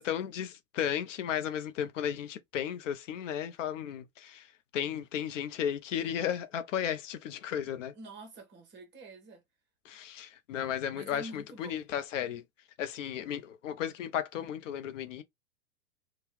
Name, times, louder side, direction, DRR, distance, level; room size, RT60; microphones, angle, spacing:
voice 1, 0.0-7.9 9.8-12.4 12.8-15.2, left 9 dB, 60° left, 0.6 m, -34 dB
voice 2, 7.9-9.4 10.9-11.8, right 2 dB, 25° right, 1.0 m, -47 dB
2.8 x 2.3 x 3.3 m
hypercardioid pair, 115°, 43 cm